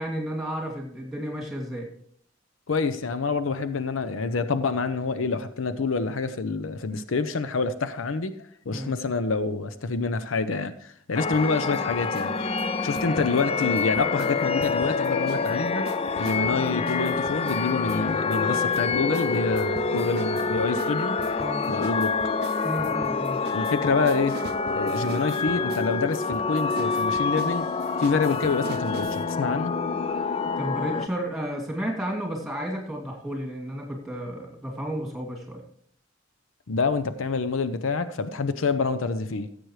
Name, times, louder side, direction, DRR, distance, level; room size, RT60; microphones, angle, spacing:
voice 1, 0.0-1.9 8.7-9.0 21.4-21.7 22.6-23.4 30.6-35.6, equal, ahead, -1 dB, 2.7 m, -32 dB
voice 2, 2.7-8.3 8.7-15.9 16.2-21.3 21.7-22.1 23.5-24.4 24.7-27.7 28.0-29.7 36.7-39.5, left 4 dB, 85° left, 11 dB, 0.6 m, -27 dB
sound 1, 11.1-31.1, left 4 dB, 30° left, 0.4 m, -27 dB
sound 2, 11.3-12.3 12.6-15.5 15.8-29.2, right 3 dB, 55° right, 0.6 m, -42 dB
15.0 x 7.8 x 3.2 m, 0.63 s
head